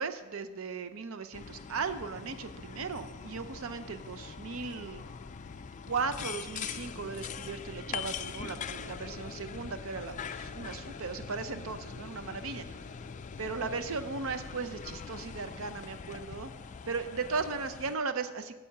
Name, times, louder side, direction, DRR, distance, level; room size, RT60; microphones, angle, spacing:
voice 1, 0.0-5.0 5.9-12.8 13.4-16.5 16.9-18.6, right 4 dB, 65° right, 10 dB, 0.6 m, -37 dB
sound 1, 1.3-18.0, left 6 dB, 35° left, 0.4 m, -42 dB
10.0 x 7.6 x 5.7 m, 1.2 s
head